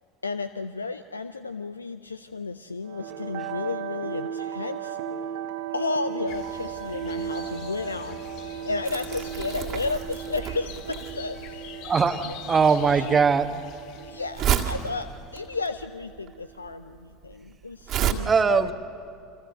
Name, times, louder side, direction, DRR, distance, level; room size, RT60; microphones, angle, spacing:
voice 1, 0.2-5.0 5.7-11.7 12.2-12.4 12.9-13.2 14.0-18.7, left 3 dB, 80° left, 12 dB, 0.5 m, -33 dB
sound 1, 2.8-16.9, right 9 dB, 60° right, 1.4 m, -37 dB
sound 2, 6.3-15.7, left 10 dB, 50° left, 1.0 m, -44 dB
Crumpling crinkling, 8.8-18.1, right 10 dB, 40° right, 1.9 m, -31 dB
voice 2, 11.8-13.7 18.2-18.7, right 5 dB, 25° right, 9 dB, 1.3 m, -21 dB
29.0 x 25.5 x 6.8 m, 2.5 s
figure-of-eight pair, 75°, 0 cm